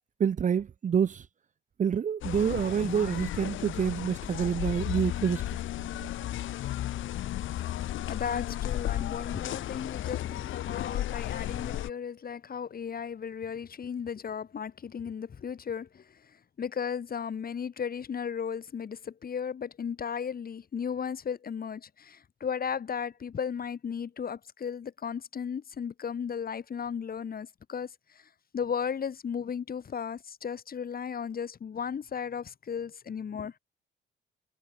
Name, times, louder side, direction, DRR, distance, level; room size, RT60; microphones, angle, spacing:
voice 1, 0.2-1.3 1.8-5.6, right 7 dB, 40° right, 0.7 m, -27 dB
sound 1, 2.2-11.9, left 13 dB, 80° left, 2.8 m, -34 dB
voice 2, 8.1-33.6, left 7 dB, 50° left, 4.8 m, -35 dB
cardioid pair, 90°, 20 cm